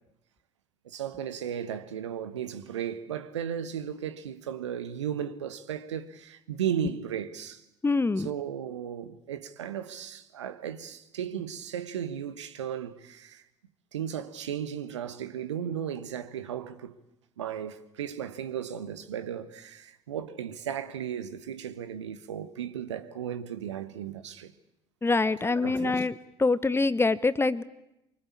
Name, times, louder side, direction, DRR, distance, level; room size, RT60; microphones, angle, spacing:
voice 1, 0.8-7.6 8.2-13.4 13.9-16.9 17.4-24.5 25.4-26.1, right 9 dB, 75° right, 1.3 m, -35 dB
voice 2, 7.8-8.3 25.0-26.1 26.4-27.6, left 3 dB, 15° left, 1.1 m, -25 dB
24.5 x 24.5 x 8.6 m
figure-of-eight pair, 55°, 15 cm